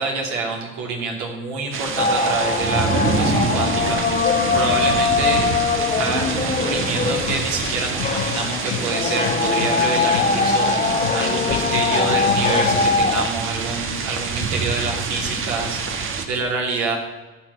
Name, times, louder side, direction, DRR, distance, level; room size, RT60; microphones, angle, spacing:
voice 1, 0.0-5.5 6.0-17.0, right 3 dB, 65° right, 0 dB, 3.1 m, -27 dB
sound 1, 1.7-16.3, right 4 dB, 40° right, 1.6 m, -26 dB
sound 2, 2.0-13.3, left 5 dB, 25° left, 1.2 m, -22 dB
sound 3, 7.3-13.0, left 7 dB, 80° left, 1.2 m, -32 dB
15.0 x 6.3 x 5.7 m, 1.2 s
hypercardioid pair, 75°, 31 cm